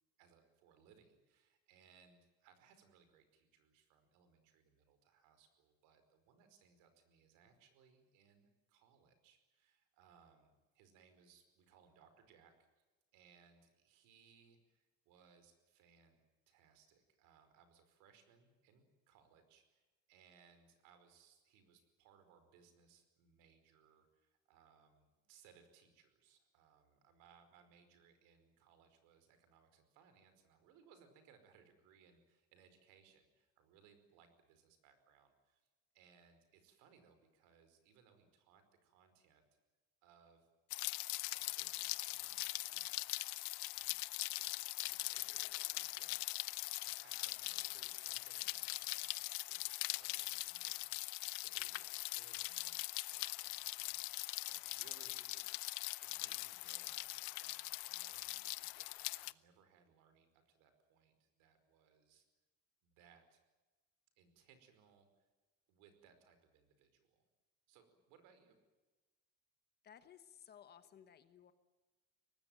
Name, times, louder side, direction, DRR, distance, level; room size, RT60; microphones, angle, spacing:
voice 1, 0.2-12.8 13.1-16.2 16.5-35.6 35.9-39.4 40.0-40.5 41.2-44.0 44.3-49.2 49.5-55.5 56.0-62.3 62.8-63.4 64.2-65.3 65.7-67.3 67.7-68.6, right 7 dB, 65° right, 9 dB, 5.0 m, -68 dB
Rain, 40.7-59.3, left 24 dB, 85° left, 0.8 m, -42 dB
voice 2, 69.8-71.5, left 9 dB, 30° left, 11 dB, 1.2 m, -59 dB
24.0 x 19.5 x 9.1 m, 1.2 s
cardioid pair, 180°, 34 cm